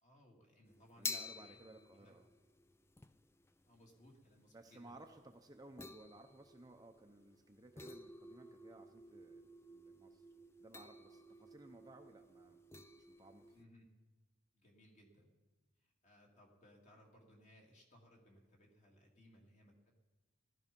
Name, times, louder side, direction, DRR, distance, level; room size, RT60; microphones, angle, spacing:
voice 1, 0.0-1.6 1.9-2.1 3.7-5.0 13.5-13.9 14.5-15.3 15.8-19.9, left 1 dB, 35° left, 0 dB, 2.5 m, -65 dB
sound 1, 0.7-13.6, left 3 dB, 10° left, 0.4 m, -51 dB
voice 2, 1.0-2.3 4.5-10.2 10.6-12.6 13.0-13.6, right 2 dB, 20° right, 4 dB, 0.7 m, -59 dB
16.0 x 12.5 x 5.3 m, 1.2 s
head